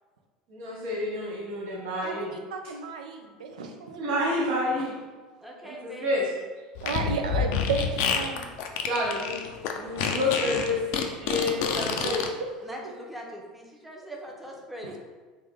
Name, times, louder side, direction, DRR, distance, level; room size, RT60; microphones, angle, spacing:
voice 1, 0.5-2.3 4.0-5.0 5.6-6.3 8.8-9.4 9.8-12.2, left 1 dB, 60° right, -3 dB, 1.0 m, -29 dB
voice 2, 2.0-4.0 6.8-8.5 12.0-12.2, right 5 dB, 75° right, 4 dB, 0.4 m, -33 dB
voice 3, 5.4-6.1 12.6-15.0, equal, 5° right, -2 dB, 0.7 m, -41 dB
Fart, 6.8-12.3, left 7 dB, 60° left, 0.4 m, -28 dB
3.2 x 2.5 x 3.6 m, 1.4 s
hypercardioid pair, 75°, 4 cm